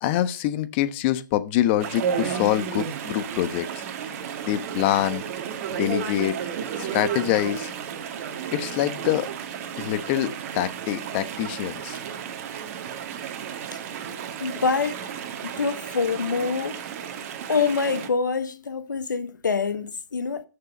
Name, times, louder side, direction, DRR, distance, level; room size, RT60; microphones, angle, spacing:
voice 1, 0.0-3.8 4.4-5.2 5.7-6.4 6.8-7.7 8.5-9.3 9.8-12.0, left 13 dB, 35° left, 1.0 m, -25 dB
Chatter / Stream, 1.8-18.1, right 8 dB, 45° right, 1.7 m, -33 dB
voice 2, 14.4-15.1 15.4-16.8 17.5-20.5, left 5 dB, 80° left, 1.2 m, -25 dB
13.0 x 6.8 x 5.3 m
hypercardioid pair, 130°, 10 cm